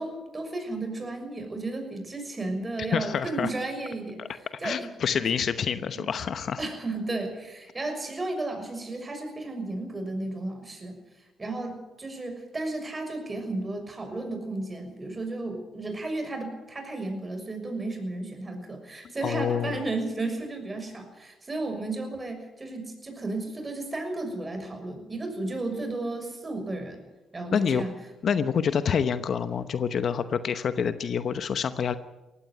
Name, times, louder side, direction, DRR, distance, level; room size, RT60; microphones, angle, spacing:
voice 1, 0.0-4.2 4.6-4.9 5.3-5.4 5.9-6.1 6.6-11.0 11.4-27.0 27.3-27.9, right 2 dB, 25° right, 6 dB, 6.4 m, -33 dB
voice 2, 2.9-3.5 4.6-6.6 19.2-19.8 27.5-27.8 28.2-31.9, left 7 dB, 55° left, 11 dB, 0.9 m, -27 dB
18.5 x 15.5 x 9.6 m, 1.1 s
cardioid pair, 90°, 0 cm